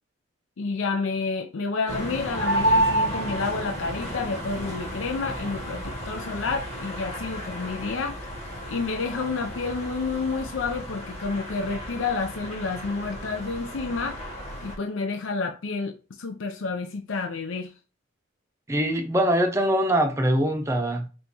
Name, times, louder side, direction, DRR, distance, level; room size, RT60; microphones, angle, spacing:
voice 1, 0.6-8.2 8.7-14.2 14.6-17.7, left 4 dB, 75° left, 0.5 m, -30 dB
sound 1, 1.9-14.8, right 1 dB, 30° left, 1.1 m, -31 dB
voice 2, 18.7-21.1, equal, 15° right, 0.6 m, -23 dB
5.4 x 2.6 x 3.0 m
head